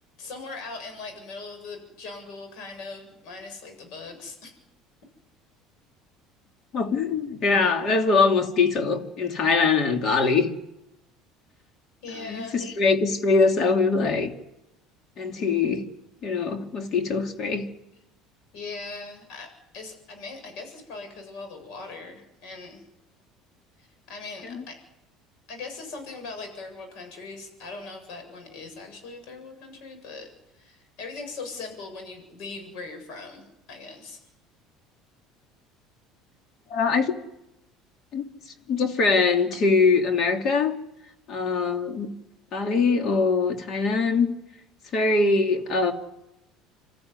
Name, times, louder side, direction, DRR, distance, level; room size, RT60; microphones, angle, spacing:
voice 1, 0.2-4.5 12.0-12.6 18.5-19.5 19.7-22.8 23.8-24.7 25.5-30.3 30.5-34.2, left 3 dB, 70° left, 7.8 m, -40 dB
voice 2, 6.7-10.5 12.2-14.3 15.2-15.8 16.2-17.7 24.4-24.6 36.7-37.1 38.1-38.2 38.7-40.7 41.3-42.1 42.5-44.3 44.9-45.9, left 4 dB, 45° left, 2.9 m, -22 dB
27.5 x 14.0 x 9.8 m
supercardioid pair, 120°, 0 cm